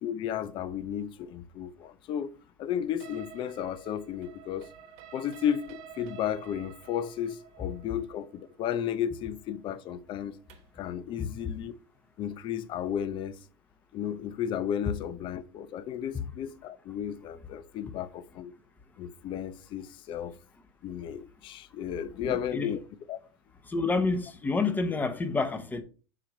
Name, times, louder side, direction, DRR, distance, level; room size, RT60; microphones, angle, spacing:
voice 1, 0.0-2.3 2.6-4.7 5.1-10.3 10.8-11.7 12.2-13.4 13.9-18.5 19.0-20.3 20.8-22.8 23.1-23.2, left 9 dB, 40° left, 0.7 m, -33 dB
sound 1, 3.0-10.8, right 9 dB, 50° right, 0.8 m, -50 dB
voice 2, 22.2-22.7 23.6-25.8, left 3 dB, 15° left, 1.0 m, -29 dB
7.5 x 3.0 x 5.2 m
hypercardioid pair, 115°, 14 cm